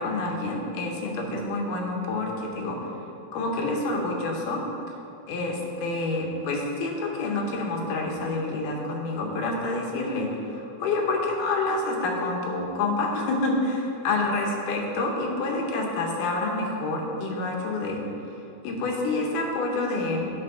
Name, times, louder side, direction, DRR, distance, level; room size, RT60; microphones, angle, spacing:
voice 1, 0.0-2.9 3.3-4.6 5.3-18.0 18.6-20.3, left 2 dB, 80° left, 0 dB, 2.6 m, -28 dB
9.7 x 4.6 x 5.6 m, 2.6 s
omnidirectional pair, 3.7 m